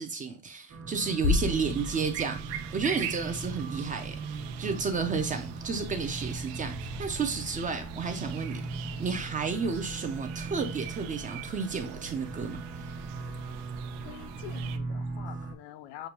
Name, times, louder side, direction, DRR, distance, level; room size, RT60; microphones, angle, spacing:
voice 1, 0.0-8.6 9.0-12.6, right 5 dB, 20° right, 0.4 m, -32 dB
sound 1, 0.7-15.5, right 3 dB, 45° right, 1.3 m, -39 dB
sound 2, 1.2-3.0, left 4 dB, 45° left, 0.6 m, -31 dB
sound 3, 1.4-14.8, right 9 dB, 85° right, 0.6 m, -42 dB
voice 2, 14.0-16.1, left 12 dB, 80° left, 0.7 m, -45 dB
6.6 x 2.2 x 2.9 m
cardioid pair, 145°, 40 cm